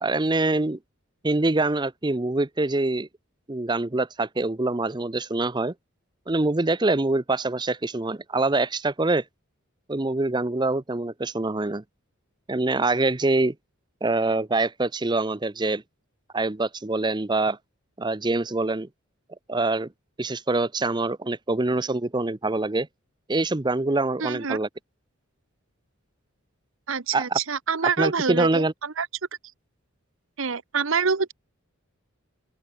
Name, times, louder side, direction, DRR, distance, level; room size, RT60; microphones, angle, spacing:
voice 1, 0.0-0.8 1.2-3.1 3.5-5.7 6.3-9.2 9.9-11.8 12.5-13.5 14.0-15.8 16.3-17.6 18.0-18.9 19.5-19.9 20.2-22.9 23.3-24.7 27.1-27.4 28.0-28.7, right 2 dB, 20° right, 0.6 m, -24 dB
voice 2, 24.2-24.6 26.9-29.1 30.4-31.3, right 5 dB, 70° right, 1.0 m, -26 dB
open air
head